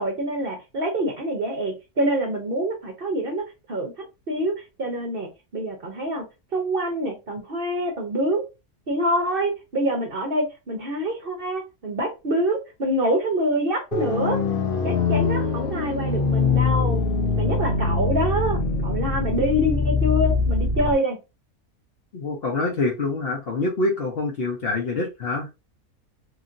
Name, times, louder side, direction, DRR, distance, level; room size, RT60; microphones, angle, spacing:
voice 1, 0.0-6.2 6.5-8.5 8.9-14.4 14.8-17.0 17.4-21.2, equal, 50° right, 0.8 m, -26 dB
sound 1, 13.9-20.9, left 4 dB, 80° left, 0.4 m, -23 dB
voice 2, 22.1-25.5, left 3 dB, 50° left, 0.8 m, -26 dB
2.9 x 2.6 x 2.5 m
omnidirectional pair, 1.5 m